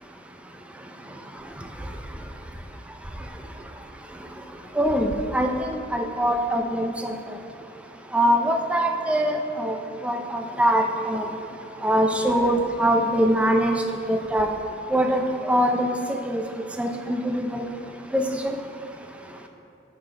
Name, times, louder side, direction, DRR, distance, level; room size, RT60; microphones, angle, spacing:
voice 1, 4.8-7.1 8.1-9.8 10.0-11.3 11.8-14.5 14.9-16.0 16.3-16.4 16.8-17.7 18.1-18.5, equal, 5° right, 3 dB, 0.4 m, -23 dB
6.4 x 5.8 x 4.0 m, 2.8 s
head